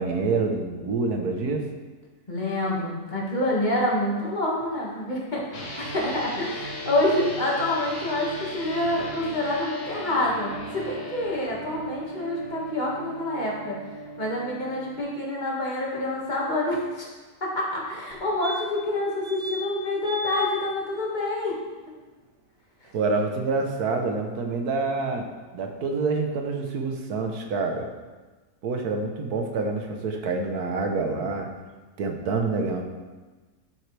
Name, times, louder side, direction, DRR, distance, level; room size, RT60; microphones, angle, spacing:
voice 1, 0.0-1.7 22.9-25.3 25.5-27.9 28.6-31.5 32.0-32.8, right 3 dB, 80° right, 3 dB, 1.6 m, -27 dB
voice 2, 2.3-13.8 14.2-17.1 17.4-21.6, left 1 dB, 30° left, -4 dB, 2.0 m, -27 dB
sound 1, 5.5-15.0, equal, 60° left, 1.7 m, -37 dB
sound 2, 18.1-18.2 18.4-18.9 19.2-19.7 20.0-20.5 22.9-23.0 23.2-23.3, left 1 dB, 45° right, 1.5 m, -35 dB
11.0 x 7.6 x 3.4 m, 1.3 s
omnidirectional pair, 1.6 m